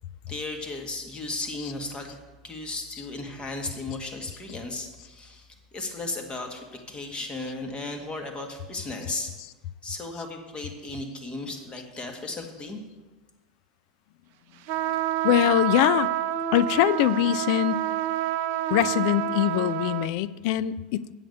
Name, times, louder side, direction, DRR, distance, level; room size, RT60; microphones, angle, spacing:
voice 1, 0.3-2.2 2.4-9.3 9.8-12.8, left 2 dB, 25° left, 4 dB, 1.8 m, -35 dB
sound 1, 14.7-20.1, right 12 dB, 55° right, 0.6 m, -28 dB
voice 2, 15.2-16.1 16.5-17.8 18.7-21.1, left 13 dB, 60° left, 17 dB, 0.4 m, -23 dB
8.3 x 7.2 x 6.7 m, 1.2 s
hypercardioid pair, 100°, 4 cm